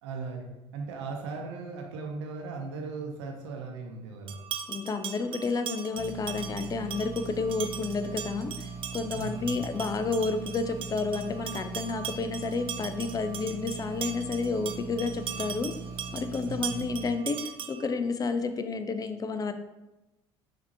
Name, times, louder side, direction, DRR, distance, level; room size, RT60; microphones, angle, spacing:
voice 1, 0.0-4.4 9.1-9.6 16.4-16.8, right 4 dB, 70° right, 2 dB, 0.7 m, -38 dB
sound 1, 4.3-17.9, right 8 dB, 35° right, 0.4 m, -40 dB
voice 2, 4.7-15.7 16.1-19.5, left 4 dB, 25° left, 8 dB, 0.4 m, -31 dB
sound 2, 5.9-17.1, right 4 dB, 80° left, 0.9 m, -41 dB
5.8 x 2.7 x 2.8 m, 1.0 s
figure-of-eight pair, 60°, 15 cm